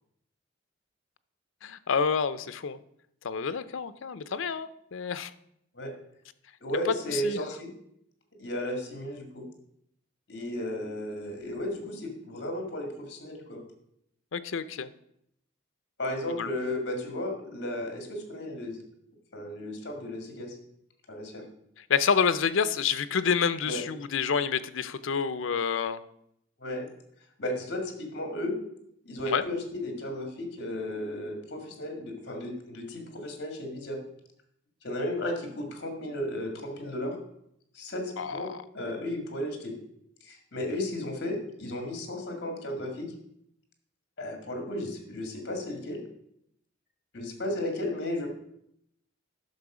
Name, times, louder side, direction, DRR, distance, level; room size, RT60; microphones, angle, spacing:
voice 1, 1.6-2.8 3.2-5.3 6.9-7.4 14.3-14.9 16.4-16.5 21.9-26.0 29.3-29.4 38.2-38.6, left 6 dB, 80° left, 14 dB, 0.6 m, -28 dB
voice 2, 6.6-7.7 8.4-9.5 10.3-13.6 16.0-18.8 19.3-20.5 21.1-21.4 23.6-23.8 26.6-26.9 27.4-28.6 29.1-34.0 34.8-37.2 37.7-38.5 38.7-39.8 40.2-43.1 44.2-46.0 47.1-48.3, left 1 dB, 55° left, 4 dB, 1.9 m, -34 dB
10.5 x 6.2 x 4.9 m, 0.75 s
head